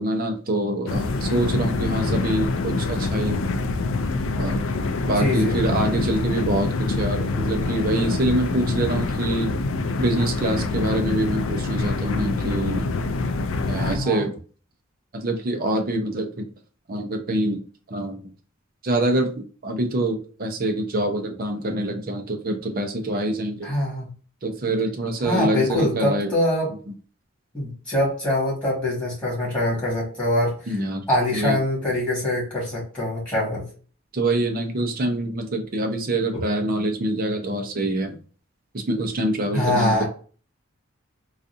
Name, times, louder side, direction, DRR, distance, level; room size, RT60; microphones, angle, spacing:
voice 1, 0.0-3.4 4.4-4.6 5.1-9.5 10.0-12.9 13.7-14.4 15.1-16.5 16.9-17.6 17.9-18.2 18.8-19.3 19.6-23.7 24.4-26.3 30.7-31.1 31.3-31.6 34.1-38.2 38.9-40.0, right 1 dB, 45° right, 5 dB, 0.6 m, -25 dB
sound 1, 0.9-14.0, left 3 dB, 70° left, 0.4 m, -25 dB
voice 2, 5.2-5.6 13.8-14.2 23.6-24.1 25.2-26.7 27.5-30.6 31.1-33.7 39.5-40.0, left 1 dB, 5° left, -5 dB, 1.7 m, -24 dB
3.9 x 2.4 x 2.6 m, 0.40 s
head